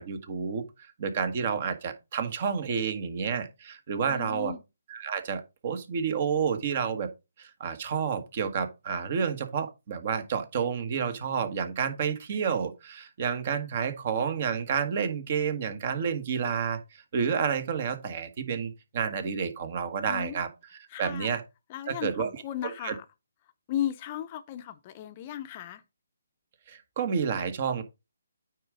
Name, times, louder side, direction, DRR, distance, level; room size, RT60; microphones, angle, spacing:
voice 1, 0.0-4.5 4.9-7.1 7.4-20.5 21.0-21.4 21.9-22.3 22.6-22.9 26.7-27.8, right 6 dB, 45° right, 1.4 m, -30 dB
voice 2, 4.0-4.6 20.1-20.4 20.9-21.3 21.7-23.0 23.7-25.8, left 11 dB, 30° left, 0.7 m, -35 dB
9.2 x 3.7 x 5.0 m
figure-of-eight pair, 150°, 0 cm